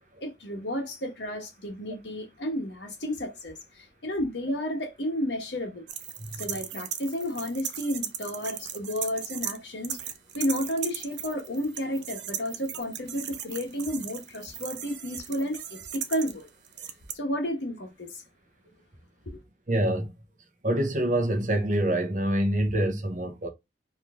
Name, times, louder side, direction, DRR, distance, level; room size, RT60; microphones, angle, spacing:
voice 1, 0.2-5.9 6.4-16.5 17.1-18.2 19.2-19.4, equal, 80° left, 1.4 m, -32 dB
sound 1, 5.9-9.6 9.8-17.1, right 10 dB, 90° right, 0.8 m, -37 dB
voice 2, 19.7-20.1 20.6-23.5, right 1 dB, 45° right, 1.1 m, -26 dB
4.5 x 3.2 x 3.7 m
head